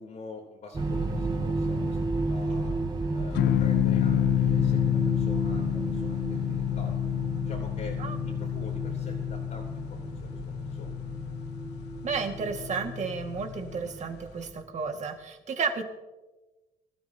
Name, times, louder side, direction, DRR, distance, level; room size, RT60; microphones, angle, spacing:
voice 1, 0.0-2.0 2.3-2.7 3.1-7.1 7.5-10.9, left 4 dB, 55° left, -5 dB, 3.7 m, -46 dB
sound 1, 0.7-14.8, right 2 dB, 25° right, 2.3 m, -33 dB
sound 2, 3.3-13.9, left 14 dB, 85° left, 0.6 m, -29 dB
voice 2, 12.0-15.8, right 5 dB, 45° right, 4 dB, 2.1 m, -32 dB
25.0 x 13.0 x 2.9 m, 1.1 s
cardioid pair, 110°, 17 cm